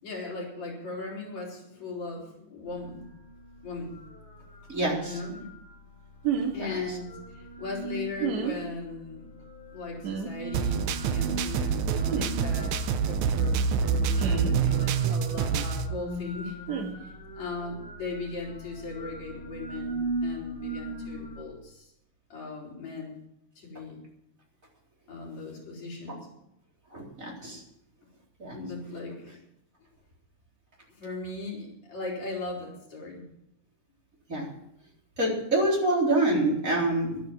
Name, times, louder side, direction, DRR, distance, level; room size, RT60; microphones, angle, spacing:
voice 1, 0.0-3.1 3.6-4.0 5.0-5.5 6.5-9.3 9.7-12.8 13.0-16.6 17.0-21.9 22.3-23.2 23.6-24.0 25.1-26.3 27.4-27.5 28.5-29.4 31.0-33.2, left 3 dB, 65° left, -3 dB, 5.6 m, -38 dB
sound 1, 2.7-21.4, right 1 dB, 40° left, 5.2 m, -40 dB
voice 2, 4.7-5.2 26.9-27.6 28.4-28.6 34.3-34.4 35.2-37.2, right 2 dB, 25° right, -2 dB, 4.2 m, -26 dB
sound 2, 6.2-6.5 8.2-8.6 10.0-10.3 12.1-12.3 14.2-14.6 16.7-16.9, right 6 dB, 70° right, 3.2 m, -29 dB
sound 3, 10.5-15.9, right 6 dB, 90° right, 2.2 m, -26 dB
12.0 x 12.0 x 7.3 m, 0.81 s
omnidirectional pair, 3.4 m